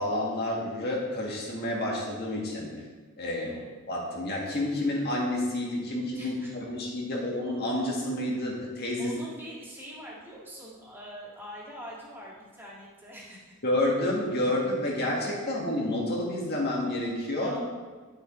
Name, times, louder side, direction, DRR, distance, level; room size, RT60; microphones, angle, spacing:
voice 1, 0.0-2.9 3.2-3.6 3.8-9.1 13.6-17.5, left 1 dB, 45° left, -2 dB, 1.8 m, -29 dB
voice 2, 3.4-3.7 6.1-6.5 9.0-13.6 17.4-17.6, equal, 10° right, -7 dB, 2.1 m, -44 dB
10.5 x 6.5 x 3.2 m, 1.4 s
head